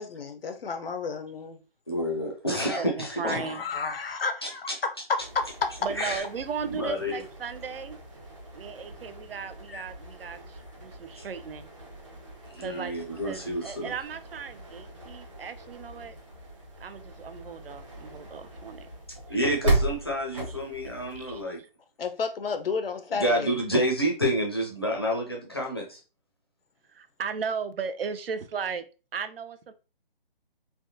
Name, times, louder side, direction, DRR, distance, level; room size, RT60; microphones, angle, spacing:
voice 1, 0.0-1.6 3.2-4.6 9.7-9.8 22.0-23.5, left 5 dB, 75° left, 0.7 m, -32 dB
voice 2, 1.9-3.2 4.4-4.5 6.0-6.2 6.6-7.2 12.5-13.9 19.3-21.6 23.1-26.0, equal, 25° left, 0.5 m, -29 dB
voice 3, 2.5-3.6 5.8-8.0 8.5-11.7 12.6-12.9 13.2-16.2 16.8-18.9 19.3-19.4 19.6-19.7 20.5-20.6 21.1-21.7 26.9-28.8 29.1-29.7, right 6 dB, 75° right, 0.5 m, -36 dB
sound 1, 5.2-21.4, right 2 dB, 35° right, 0.7 m, -37 dB
3.4 x 2.2 x 2.6 m
hypercardioid pair, 180°, 29 cm